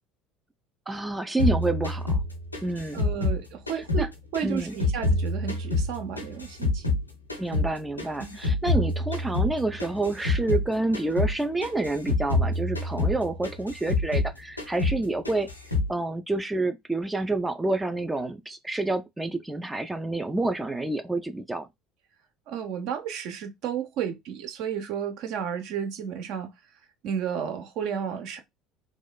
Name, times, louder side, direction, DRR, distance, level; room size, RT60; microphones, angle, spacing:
voice 1, 0.9-2.2 2.6-3.0 3.8-4.1 4.4-4.8 7.4-15.5 15.9-21.7, right 2 dB, 10° right, 0.3 m, -28 dB
sound 1, 1.4-4.1 4.3-7.0 7.3-10.7 10.9-11.3 11.6-14.3 14.6-15.0 15.2-15.9, left 2 dB, 90° left, 0.6 m, -26 dB
voice 2, 2.9-6.9 8.2-8.4 22.5-26.5 27.0-28.4, right 8 dB, 55° right, 0.6 m, -32 dB
3.0 x 2.3 x 2.2 m
figure-of-eight pair, 65°, 0 cm